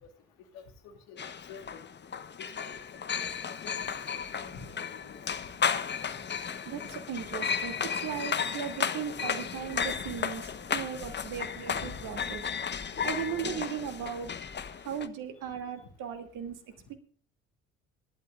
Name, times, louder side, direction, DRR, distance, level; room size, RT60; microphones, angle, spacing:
voice 1, 0.5-1.9 2.4-2.8 3.1-3.3 3.6-5.2 10.1-10.2, left 5 dB, 65° left, 5 dB, 2.5 m, -49 dB
sound 1, 1.2-15.1, left 7 dB, 30° left, 1.1 m, -34 dB
voice 2, 6.7-10.4 10.7-12.4 13.0-14.3 14.8-16.6 16.9-17.0, right 8 dB, 55° right, 7 dB, 2.7 m, -37 dB
25.5 x 12.0 x 2.5 m, 0.42 s
hypercardioid pair, 55°, 36 cm